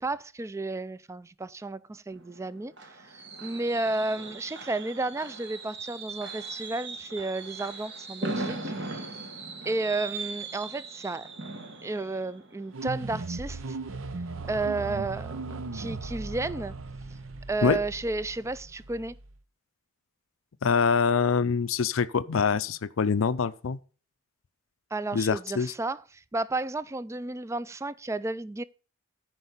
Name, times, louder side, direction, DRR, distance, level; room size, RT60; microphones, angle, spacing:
voice 1, 0.0-8.7 9.7-11.3 11.8-13.8 14.5-16.7 17.5-19.1 24.9-28.6, right 2 dB, 15° right, 0.3 m, -32 dB
Fireworks, 2.1-13.8 14.2-14.5 14.7-14.8, right 3 dB, 60° right, 1.8 m, -39 dB
sound 1, 12.7-19.4, right 3 dB, 85° right, 0.8 m, -38 dB
voice 2, 20.6-23.8 25.1-25.7, left 5 dB, 85° left, 0.5 m, -25 dB
9.8 x 4.7 x 6.6 m
head